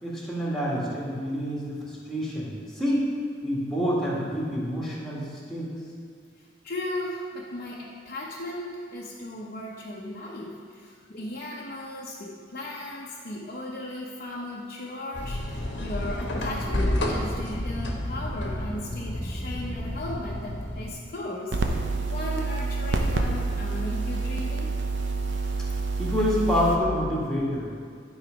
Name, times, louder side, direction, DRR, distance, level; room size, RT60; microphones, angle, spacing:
voice 1, 0.0-3.1 3.4-5.7 26.0-27.7, equal, ahead, -6 dB, 1.9 m, -27 dB
voice 2, 6.6-24.7, left 1 dB, 50° left, -5 dB, 0.8 m, -36 dB
sound 1, 15.1-20.9, left 1 dB, 75° left, 1.1 m, -30 dB
sound 2, 21.5-26.8, right 3 dB, 75° right, 0.7 m, -28 dB
11.5 x 4.0 x 5.2 m, 2.1 s
head